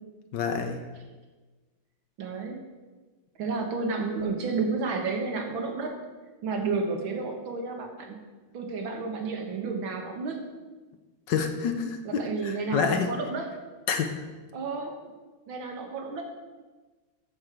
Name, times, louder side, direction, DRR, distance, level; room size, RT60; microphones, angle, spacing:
voice 1, 0.3-0.8 11.3-13.1 13.9-14.2, left 6 dB, 65° left, 6 dB, 1.4 m, -28 dB
voice 2, 2.2-2.6 3.4-6.0 6.4-8.2 8.5-10.4 12.0-13.5 14.5-15.0 15.5-16.2, right 4 dB, 75° right, 3 dB, 2.1 m, -31 dB
12.5 x 4.6 x 6.7 m, 1.3 s
omnidirectional pair, 2.2 m